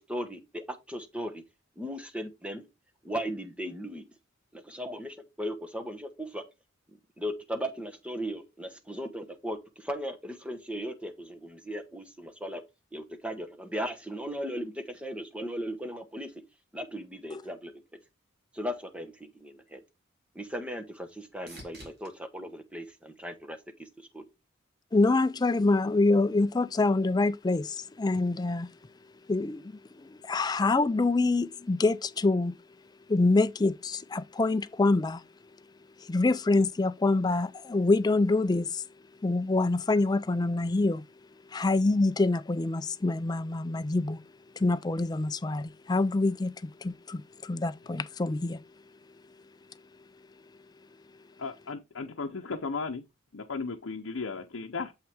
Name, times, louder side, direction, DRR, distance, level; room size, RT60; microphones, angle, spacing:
voice 1, 0.1-1.4 1.8-2.7 3.0-4.0 4.5-6.4 7.2-12.6 12.9-16.3 16.7-17.7 18.5-19.8 20.3-23.6 24.1-24.2, equal, 5° right, 1.1 m, -37 dB
sound 1, 19.9-23.9 24.5-25.1 32.9-33.0, right 1 dB, 50° right, 3.0 m, -55 dB
voice 2, 24.9-28.7 29.3-32.5 33.1-35.2 36.0-38.8 39.2-41.0 41.5-44.2 44.6-48.6, left 2 dB, 20° left, 0.4 m, -26 dB
voice 3, 51.4-53.0 53.3-54.9, left 4 dB, 75° left, 0.7 m, -35 dB
7.4 x 5.7 x 3.5 m
head